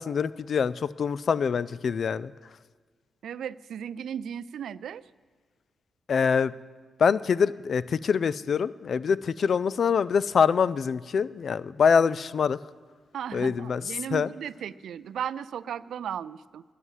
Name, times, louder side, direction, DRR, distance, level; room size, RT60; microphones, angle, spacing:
voice 1, 0.0-2.3 6.1-6.5 7.0-12.6 13.3-13.8 14.1-14.3, left 6 dB, 60° left, 18 dB, 0.3 m, -24 dB
voice 2, 3.2-5.1 13.1-16.6, right 8 dB, 80° right, 17 dB, 0.3 m, -36 dB
11.0 x 9.6 x 7.3 m, 1.5 s
cardioid pair, 75°, 0 cm